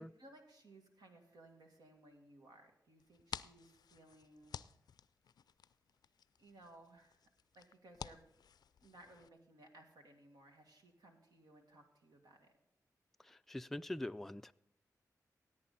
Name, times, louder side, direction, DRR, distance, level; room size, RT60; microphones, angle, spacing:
voice 1, 0.0-4.6 6.4-7.2 7.5-8.3 8.8-12.5, right 1 dB, 80° right, 2.0 m, -61 dB
sound 1, 3.0-9.3, left 8 dB, 75° left, 0.4 m, -53 dB
voice 2, 13.2-14.5, left 1 dB, 5° left, 0.3 m, -44 dB
17.0 x 8.6 x 4.2 m
cardioid pair, 60°, 7 cm